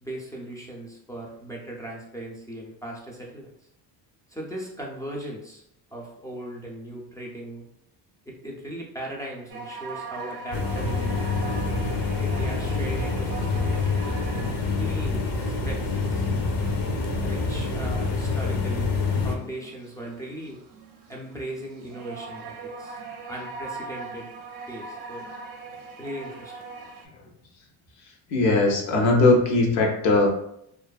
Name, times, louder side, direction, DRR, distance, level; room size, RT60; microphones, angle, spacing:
voice 1, 0.0-3.5 4.3-5.6 5.9-7.7 8.3-11.1 12.2-14.1 14.4-16.3 17.2-18.9 19.2-20.6 21.1-23.0 23.3-24.3 24.7-25.3 26.0-26.5, right 1 dB, 10° left, -3 dB, 0.3 m, -38 dB
sound 1, 9.5-27.1, right 4 dB, 50° right, 0.5 m, -41 dB
sound 2, 10.5-19.4, left 3 dB, 45° left, 0.6 m, -26 dB
voice 2, 28.3-30.3, left 2 dB, 85° left, 0 dB, 0.8 m, -19 dB
2.5 x 2.3 x 2.2 m, 0.75 s
cardioid pair, 95°, 47 cm